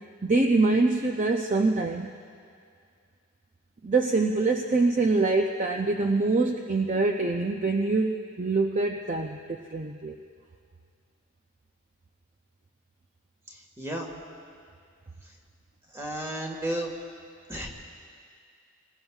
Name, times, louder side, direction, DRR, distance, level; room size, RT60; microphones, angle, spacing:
voice 1, 0.2-2.1 3.8-10.2, right 3 dB, 30° right, 2 dB, 0.5 m, -25 dB
voice 2, 13.5-14.1 15.9-16.9 17.5-17.7, right 1 dB, 10° right, 1 dB, 1.6 m, -33 dB
26.0 x 20.5 x 2.4 m, 2.3 s
head